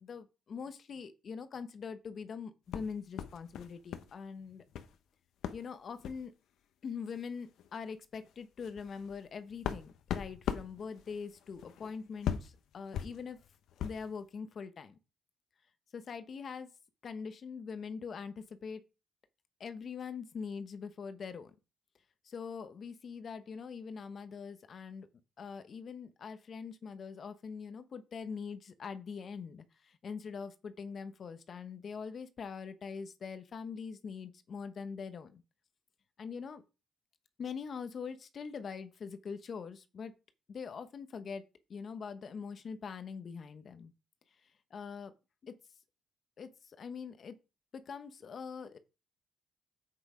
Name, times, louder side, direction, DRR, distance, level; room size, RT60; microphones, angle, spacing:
voice 1, 0.0-4.6 5.5-6.3 6.8-13.4 13.8-15.0 15.9-16.7 17.0-18.8 19.6-21.5 22.2-25.1 25.4-35.4 36.2-36.6 37.4-40.1 40.5-43.9 44.7-45.1 45.4-45.6 46.4-47.4 47.7-48.8, left 6 dB, 50° left, 1.0 m, -43 dB
sound 1, 2.7-4.1 4.4-5.0 5.4-5.7 6.0-6.3 7.1-7.2 7.6-7.8 8.2-14.1, left 9 dB, 80° left, 0.9 m, -40 dB
7.9 x 6.1 x 4.8 m
cardioid pair, 90°, 0 cm